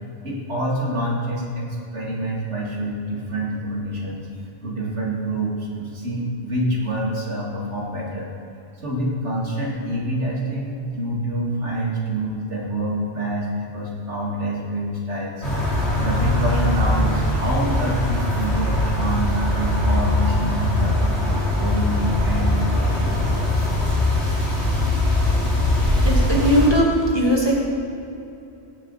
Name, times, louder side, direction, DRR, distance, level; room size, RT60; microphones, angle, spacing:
voice 1, 0.2-1.7 1.9-4.3 4.6-8.3 8.8-15.4 16.0-23.4, right 1 dB, 65° right, -3 dB, 2.7 m, -26 dB
sound 1, 15.4-26.7, left 1 dB, 60° left, 3.6 m, -21 dB
voice 2, 26.0-27.6, equal, 20° left, -3 dB, 1.8 m, -19 dB
16.5 x 9.8 x 4.1 m, 2.7 s
omnidirectional pair, 1.3 m